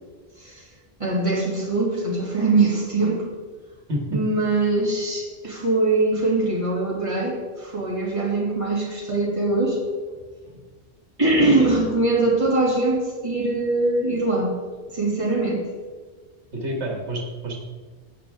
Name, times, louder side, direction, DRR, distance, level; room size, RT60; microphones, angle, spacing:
voice 1, 1.0-3.3 4.1-9.8 11.2-14.5 14.9-15.7, right 2 dB, 30° right, -4 dB, 2.7 m, -22 dB
voice 2, 3.9-4.2 16.5-17.6, right 1 dB, 80° right, 0 dB, 2.0 m, -28 dB
13.0 x 9.3 x 3.6 m, 1.4 s
omnidirectional pair, 1.1 m